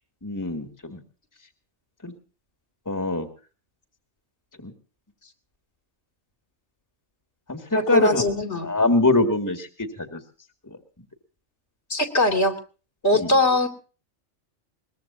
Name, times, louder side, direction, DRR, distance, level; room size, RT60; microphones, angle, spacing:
voice 1, 0.2-1.0 2.0-2.1 2.9-3.3 4.6-4.7 7.5-8.3 8.6-10.2 10.7-10.8 13.1-13.3, left 2 dB, 15° left, 5 dB, 2.0 m, -24 dB
voice 2, 7.7-8.7 11.9-12.5 13.0-13.7, left 2 dB, 55° left, 7 dB, 3.1 m, -21 dB
22.5 x 21.5 x 2.7 m, 0.37 s
omnidirectional pair, 1.3 m